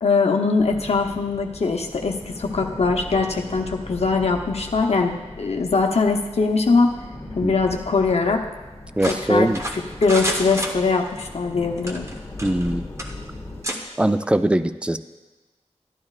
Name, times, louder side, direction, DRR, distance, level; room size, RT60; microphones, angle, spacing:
voice 1, 0.0-7.0 7.4-8.5 9.1-9.5 10.0-12.1, left 4 dB, 65° left, 3 dB, 0.7 m, -21 dB
sound 1, 0.6-13.6, left 1 dB, 20° left, 1.3 m, -39 dB
voice 2, 9.0-9.6 12.4-12.8 14.0-15.0, right 1 dB, 10° right, 11 dB, 0.4 m, -21 dB
sound 2, 9.0-11.2 11.8-12.7 13.0-13.1 13.6-13.8, equal, 25° right, 1.1 m, -29 dB
12.0 x 11.5 x 2.4 m, 1.2 s
wide cardioid pair, 80°, 12 cm